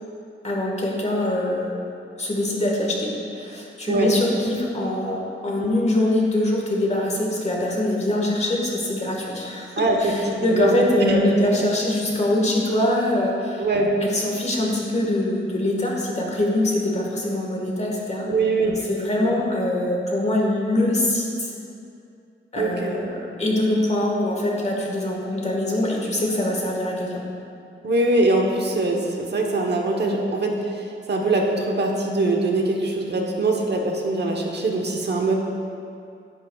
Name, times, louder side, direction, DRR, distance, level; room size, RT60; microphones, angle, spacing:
voice 1, 0.4-1.8 2.2-13.6 14.0-18.3 18.6-21.5 22.5-27.2, left 1 dB, 30° left, -2 dB, 1.6 m, -23 dB
voice 2, 9.8-10.7 11.0-11.7 13.6-13.9 18.3-18.8 22.6-23.0 27.8-35.3, right 2 dB, 55° right, 1 dB, 1.1 m, -22 dB
11.0 x 9.7 x 2.4 m, 2.5 s
wide cardioid pair, 140°, 21 cm